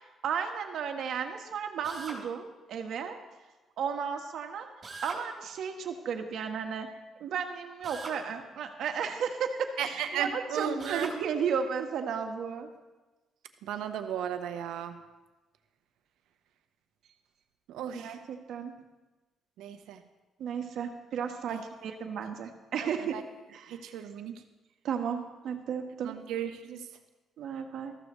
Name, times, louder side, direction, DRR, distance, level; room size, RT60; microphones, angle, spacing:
voice 1, 0.2-3.2 3.8-4.7 5.0-6.9 7.2-12.7 17.9-18.7 20.4-23.2 23.5-23.8 24.8-26.2 27.4-28.0, right 7 dB, 75° right, 5 dB, 1.4 m, -34 dB
Drill, 1.8-2.2 4.8-5.3 7.8-8.2 10.8-11.2, right 3 dB, 40° right, 3.4 m, -41 dB
voice 2, 9.8-11.1 13.6-14.9 17.7-18.2 19.6-20.0 21.5-21.6 22.8-23.2 23.7-24.4 26.0-26.8, right 8 dB, 90° right, 8 dB, 1.0 m, -35 dB
14.0 x 14.0 x 3.2 m, 1.2 s
cardioid pair, 90°, 0 cm